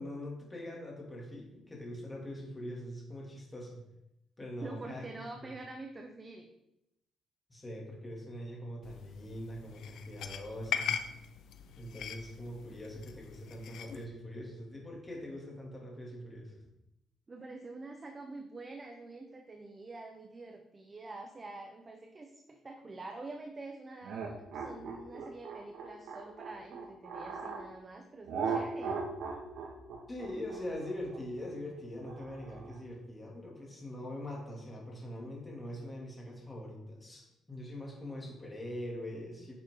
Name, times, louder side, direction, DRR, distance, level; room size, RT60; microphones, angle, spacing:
voice 1, 0.0-3.8 4.4-5.1 7.5-11.0 11.8-16.6 30.1-39.5, left 1 dB, 15° left, -2 dB, 2.8 m, -43 dB
voice 2, 4.6-6.5 17.3-29.0, right 2 dB, 25° right, 3 dB, 1.0 m, -46 dB
sound 1, 8.8-14.0, left 8 dB, 75° left, 0.8 m, -40 dB
sound 2, 24.0-27.7 28.3-32.8, right 5 dB, 75° right, 1.9 m, -38 dB
10.5 x 7.2 x 3.9 m, 0.86 s
cardioid pair, 130°, 0 cm